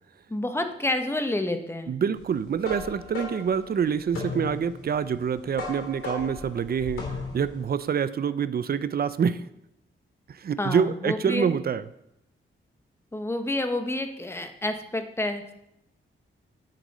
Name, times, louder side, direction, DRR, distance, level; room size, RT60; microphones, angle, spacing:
voice 1, 0.3-1.9 10.6-11.5 13.1-15.5, left 1 dB, 10° left, 6 dB, 1.1 m, -29 dB
voice 2, 1.9-9.4 10.3-11.8, right 7 dB, 45° right, 15 dB, 0.5 m, -26 dB
sound 1, 2.2-7.7, left 3 dB, 85° left, 3.3 m, -37 dB
9.3 x 6.7 x 5.4 m, 0.81 s
cardioid pair, 100°, 21 cm